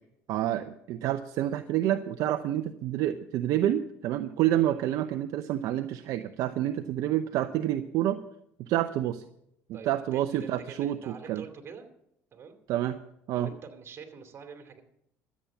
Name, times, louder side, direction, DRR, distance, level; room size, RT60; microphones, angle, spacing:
voice 1, 0.3-8.2 8.6-9.2 9.7-11.4 12.7-13.0 13.3-13.5, right 12 dB, 70° right, 9 dB, 0.6 m, -28 dB
voice 2, 9.7-11.9 12.3-12.6 13.3-14.8, right 6 dB, 45° right, 5 dB, 2.6 m, -46 dB
14.0 x 8.5 x 7.3 m, 0.78 s
supercardioid pair, 80°, 6 cm